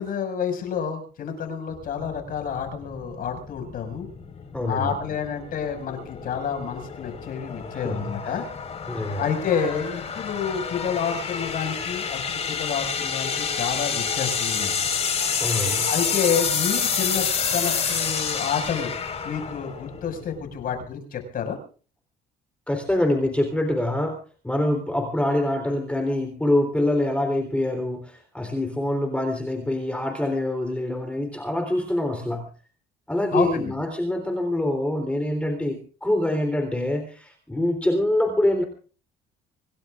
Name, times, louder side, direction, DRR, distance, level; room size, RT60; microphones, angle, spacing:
voice 1, 0.0-4.1 4.7-8.4 8.9-14.9 15.9-17.3 17.5-18.9 19.2-21.6 33.3-33.6, left 7 dB, 55° left, 6 dB, 5.9 m, -29 dB
sound 1, 1.8-20.9, left 6 dB, 40° left, 4.8 m, -29 dB
voice 2, 4.5-4.9 7.7-8.4 8.9-9.3 15.4-15.9 22.7-24.2 24.4-32.5 33.1-38.6, left 1 dB, 5° left, 4 dB, 3.6 m, -25 dB
26.5 x 17.5 x 2.5 m, 0.39 s
cardioid pair, 110°, 17 cm